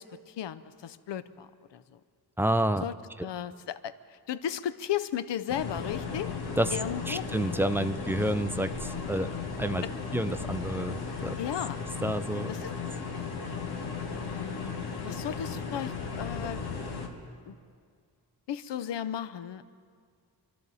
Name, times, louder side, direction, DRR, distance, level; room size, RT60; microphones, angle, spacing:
voice 1, 0.0-2.0 2.8-2.9 3.2-3.9 4.3-6.3 6.7-7.3 9.8-9.9 11.4-11.8 12.5-12.8 14.1-14.7 15.0-16.7 17.5-17.6 18.5-19.6, left 10 dB, 85° left, 14 dB, 0.7 m, -35 dB
voice 2, 2.4-2.9 6.6-6.7 7.1-9.3 9.6-9.8 10.1-11.4 12.0-12.5, right 1 dB, 5° right, 10 dB, 0.4 m, -29 dB
sound 1, 5.5-17.1, left 5 dB, 65° left, 1.8 m, -35 dB
26.5 x 12.5 x 4.1 m, 2.1 s
wide cardioid pair, 135°, 41 cm